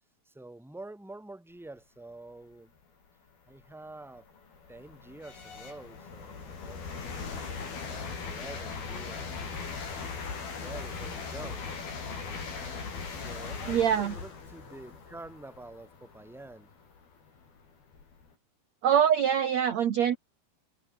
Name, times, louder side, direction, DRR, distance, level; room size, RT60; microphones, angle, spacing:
voice 1, 0.2-2.7 3.5-4.3 4.7-7.2 7.8-9.8 10.6-11.7 13.1-16.7, right 2 dB, ahead, 3.4 m, -47 dB
sound 1, 2.8-2.9 3.5-18.3, left 5 dB, 60° left, 7.7 m, -40 dB
voice 2, 13.7-14.1 18.8-20.2, right 9 dB, 55° right, 2.0 m, -24 dB
omnidirectional pair, 4.9 m